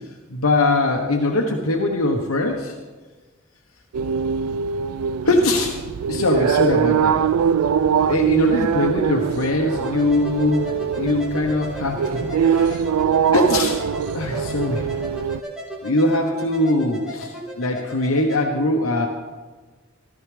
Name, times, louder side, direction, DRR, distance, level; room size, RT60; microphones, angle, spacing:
voice 1, 0.3-2.8 5.2-5.8 6.1-7.2 8.1-12.8 13.3-13.8 14.1-14.9 15.8-19.1, left 2 dB, 70° left, 1 dB, 1.0 m, -21 dB
sound 1, 3.9-15.4, right 7 dB, 85° right, 0.4 m, -22 dB
sound 2, 9.7-18.4, equal, 5° right, 1.8 m, -36 dB
14.5 x 13.0 x 3.4 m, 1.3 s
head